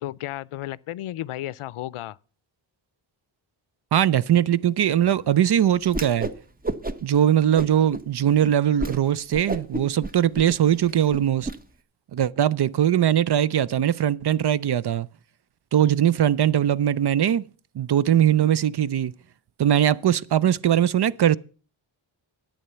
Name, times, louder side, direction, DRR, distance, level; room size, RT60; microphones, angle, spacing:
voice 1, 0.0-2.2, left 14 dB, 85° left, 0.6 m, -33 dB
voice 2, 3.9-6.3 7.0-11.5 12.1-15.1 15.7-17.4 17.7-19.1 19.6-21.4, right 10 dB, 55° right, 0.6 m, -21 dB
Whoosh swoosh swish, 5.9-6.4 6.6-7.2 7.5-8.0 8.4-8.5 8.8-9.0 9.3-11.6, right 1 dB, 20° right, 0.9 m, -31 dB
11.0 x 8.8 x 6.8 m
cardioid pair, 80°, 49 cm